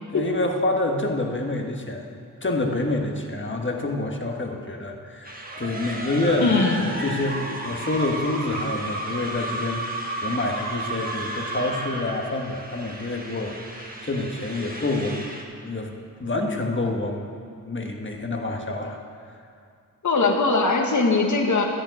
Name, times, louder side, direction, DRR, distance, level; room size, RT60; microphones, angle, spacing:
voice 1, 0.1-15.3 15.6-15.9 16.2-17.3 17.6-19.0, left 2 dB, 35° left, 2 dB, 1.5 m, -27 dB
sound 1, 5.2-15.4, right 2 dB, 25° right, 1.5 m, -33 dB
voice 2, 6.4-6.8 20.0-21.6, left 3 dB, 55° left, 1 dB, 1.4 m, -21 dB
13.5 x 6.6 x 9.4 m, 2.3 s
wide cardioid pair, 95°, 35 cm